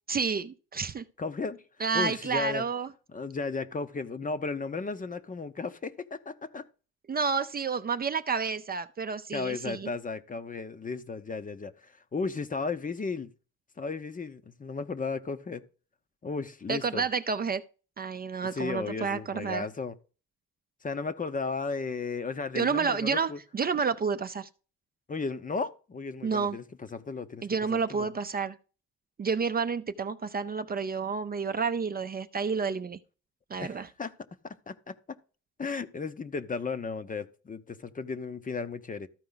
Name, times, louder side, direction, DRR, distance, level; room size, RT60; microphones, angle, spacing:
voice 1, 0.1-1.0 1.8-2.9 7.1-9.9 16.7-17.6 18.0-19.7 22.6-24.5 26.2-26.6 27.4-28.6 29.2-33.0 33.5-33.9, right 5 dB, 30° right, 0.5 m, -30 dB
voice 2, 1.2-1.6 1.9-2.6 3.1-6.6 9.3-13.3 13.8-15.6 16.2-17.1 18.5-20.0 20.8-23.4 25.1-26.6 26.9-28.1 33.6-34.1 34.4-35.0 35.6-39.1, left 4 dB, 25° left, 0.7 m, -35 dB
13.5 x 4.7 x 3.9 m
cardioid pair, 90°, 30 cm